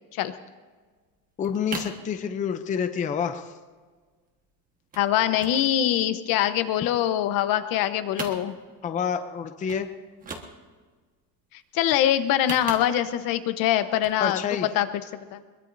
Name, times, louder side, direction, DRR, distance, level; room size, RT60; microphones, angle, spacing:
sound 1, 0.8-0.9 1.2-2.0 2.4-2.8 3.1-3.2 3.4-3.6 3.9-4.4 4.9-5.1 5.4-6.6 7.0-7.8 8.0-8.9 9.3-9.4 9.7-9.9 10.1-10.9 12.2-13.3 13.9-14.2 14.6-14.7, right 4 dB, 20° right, 1.4 m, -39 dB
voice 1, 1.4-3.5 8.8-9.9 14.2-14.7, left 7 dB, 20° left, 8 dB, 0.5 m, -28 dB
voice 2, 5.0-8.5 11.7-14.9 15.3-15.4, left 11 dB, 65° left, 10 dB, 1.0 m, -23 dB
22.0 x 22.0 x 2.7 m, 1.4 s
cardioid pair, 175°, 37 cm